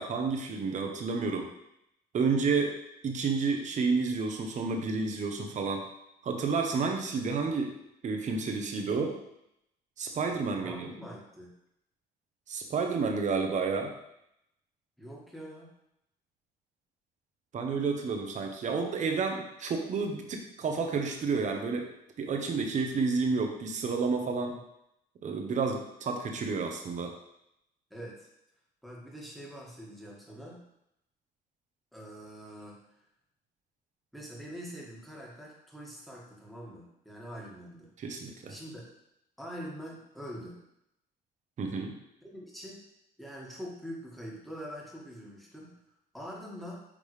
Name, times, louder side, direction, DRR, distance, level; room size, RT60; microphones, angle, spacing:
voice 1, 0.0-1.5 2.1-2.7 3.0-5.8 6.2-7.7 8.0-9.2 10.0-10.9 12.5-13.9 17.5-21.9 22.2-24.6 25.2-27.1 38.0-38.5 41.6-41.9, right 4 dB, 45° right, 3 dB, 1.1 m, -30 dB
voice 2, 10.5-11.5 15.0-15.7 24.5-24.6 27.9-28.3 28.8-30.7 31.9-32.8 34.1-37.9 38.5-38.9 39.4-40.6 42.2-42.8 43.2-45.8 46.1-46.8, equal, ahead, -4 dB, 1.9 m, -44 dB
8.5 x 3.9 x 3.4 m, 0.81 s
cardioid pair, 110°, 17 cm